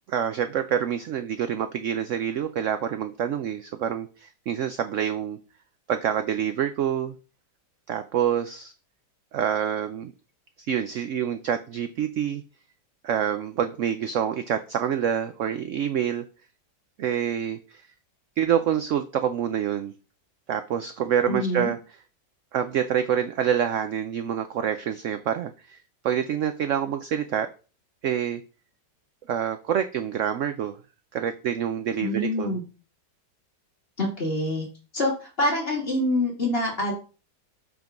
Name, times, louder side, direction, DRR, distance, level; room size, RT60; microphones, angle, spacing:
voice 1, 0.1-5.4 5.9-7.1 7.9-8.7 9.3-10.1 10.7-12.4 13.0-16.2 17.0-17.8 18.4-19.9 20.5-21.8 22.5-25.8 26.0-27.5 28.0-28.4 29.3-30.8 31.1-32.6, right 9 dB, 75° right, 9 dB, 0.7 m, -27 dB
voice 2, 21.3-21.7 32.0-32.6 34.0-34.6 34.9-36.9, left 1 dB, 30° left, -2 dB, 2.5 m, -26 dB
5.5 x 3.7 x 5.9 m, 0.34 s
omnidirectional pair, 1.9 m